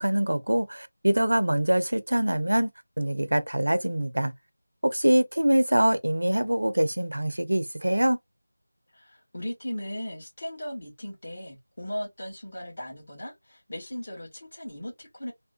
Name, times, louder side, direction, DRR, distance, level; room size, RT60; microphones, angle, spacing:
voice 1, 0.0-2.7 3.0-4.3 4.8-8.2, right 1 dB, 70° right, 0.6 m, -24 dB
voice 2, 8.9-15.3, equal, 40° left, 1.6 m, -37 dB
3.5 x 2.2 x 2.7 m
figure-of-eight pair, 170°, 0 cm